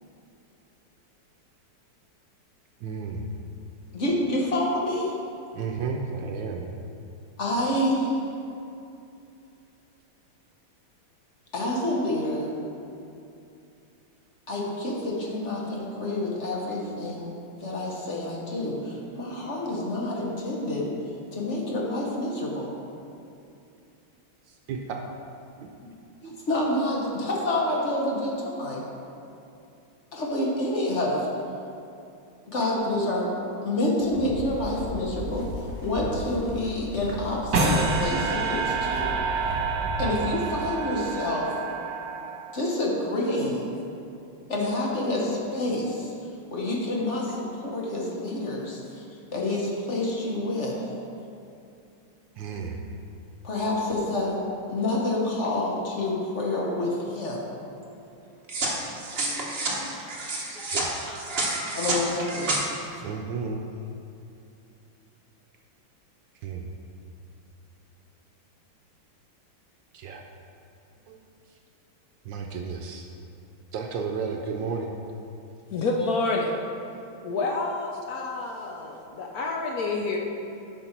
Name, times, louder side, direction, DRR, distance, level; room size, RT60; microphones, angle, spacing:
voice 1, 2.8-3.3 5.5-6.7 24.5-25.0 26.2-26.3 52.4-52.8 60.5-61.0 63.0-63.6 66.4-66.7 69.9-70.2 72.2-73.1 73.7-74.9, right 5 dB, 70° right, 2 dB, 1.3 m, -33 dB
voice 2, 3.9-5.1 7.4-8.2 11.5-12.5 14.5-17.3 17.6-20.9 21.3-22.7 26.5-28.9 30.1-31.3 32.5-33.3 33.6-39.1 40.0-41.5 42.5-43.7 44.5-46.1 46.5-49.0 49.3-50.8 53.4-54.4 54.7-57.4 61.7-62.6 62.9-63.0, left 1 dB, 40° left, -2 dB, 1.3 m, -28 dB
sound 1, 34.0-40.3, right 1 dB, 20° left, 1.1 m, -36 dB
sound 2, 37.5-42.7, right 4 dB, 55° right, 1.9 m, -28 dB
sound 3, 58.5-62.6, right 2 dB, 35° right, 1.0 m, -29 dB
voice 3, 75.7-76.6 77.2-80.2, left 3 dB, 70° left, 0 dB, 0.9 m, -28 dB
10.5 x 5.7 x 4.5 m, 2.7 s
omnidirectional pair, 2.2 m